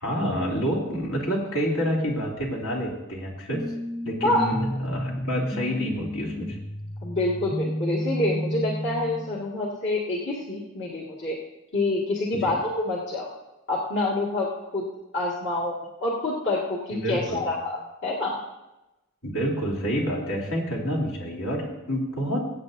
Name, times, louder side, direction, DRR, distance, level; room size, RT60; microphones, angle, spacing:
voice 1, 0.0-3.7 4.0-6.6 12.3-12.5 16.9-17.5 19.2-22.4, equal, 75° left, -3 dB, 3.1 m, -28 dB
sound 1, 3.5-9.5, equal, ahead, 0.4 m, -32 dB
voice 2, 7.0-11.4 11.7-13.3 13.7-14.9 15.1-15.7 16.0-18.3, left 2 dB, 55° left, -6 dB, 2.0 m, -27 dB
22.0 x 8.8 x 2.7 m, 0.98 s
head